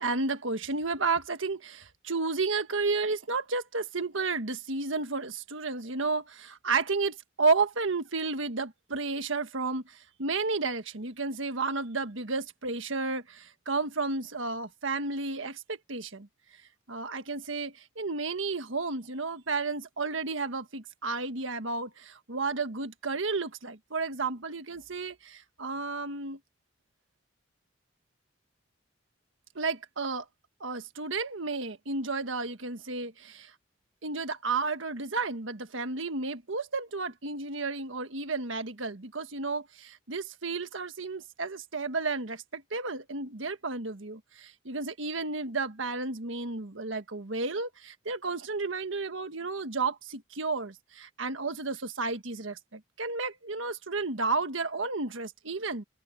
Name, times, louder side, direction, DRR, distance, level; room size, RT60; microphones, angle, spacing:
voice 1, 0.0-16.3 16.9-26.4 29.5-30.2 30.6-33.5 34.0-55.8, right 3 dB, 75° right, 1.5 m, -32 dB
head